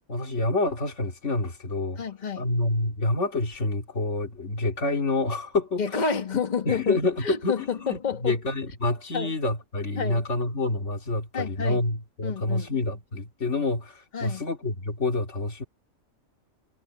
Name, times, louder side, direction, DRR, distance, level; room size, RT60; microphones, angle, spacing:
voice 1, 0.1-2.0 2.4-5.8 6.6-15.6, left 2 dB, 55° left, 2.9 m, -27 dB
voice 2, 2.0-2.5 5.8-8.4 9.1-9.3 10.0-10.2 11.3-11.8 12.2-12.7 14.1-14.4, left 5 dB, 30° left, 1.5 m, -29 dB
omnidirectional pair, 1.5 m